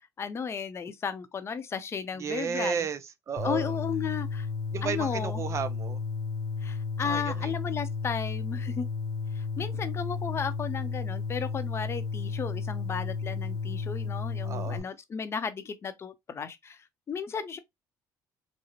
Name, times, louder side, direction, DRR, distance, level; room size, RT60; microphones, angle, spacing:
voice 1, 0.2-2.9 3.4-4.5 4.8-5.4 6.6-8.9 9.3-17.6, left 6 dB, 35° left, 0.7 m, -34 dB
voice 2, 2.2-3.7 4.7-6.0 7.0-7.5 14.4-14.9, right 6 dB, 40° right, 0.5 m, -33 dB
sound 1, 3.4-14.8, left 4 dB, 60° left, 1.0 m, -33 dB
4.9 x 2.1 x 2.9 m
cardioid pair, 100°, 8 cm